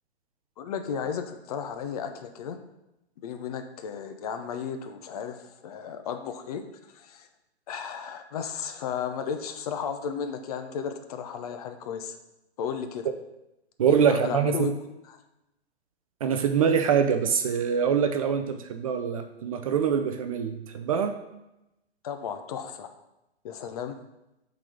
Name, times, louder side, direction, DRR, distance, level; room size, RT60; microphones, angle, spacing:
voice 1, 0.6-2.6 3.2-6.6 6.9-7.3 7.7-12.2 12.6-13.1 13.9-14.8 22.0-22.9 23.4-24.0, left 7 dB, 35° left, 7 dB, 0.6 m, -34 dB
voice 2, 13.8-14.7 16.2-21.2, right 7 dB, 35° right, 7 dB, 0.4 m, -24 dB
7.3 x 4.1 x 5.0 m, 0.92 s
figure-of-eight pair, 120°, 33 cm